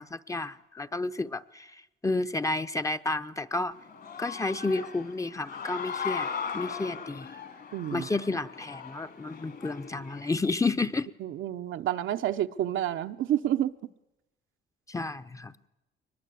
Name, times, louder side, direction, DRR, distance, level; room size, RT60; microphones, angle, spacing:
voice 1, 0.0-1.7 2.0-3.7 4.2-6.3 6.5-7.3 7.9-11.1 14.9-15.5, left 3 dB, 15° left, 0.8 m, -31 dB
Human voice / Cheering, 3.7-10.3, left 6 dB, 55° left, 2.8 m, -38 dB
voice 2, 7.7-8.1 11.2-13.7, right 11 dB, 80° right, 0.9 m, -29 dB
22.0 x 21.0 x 8.5 m
cardioid pair, 90°, 20 cm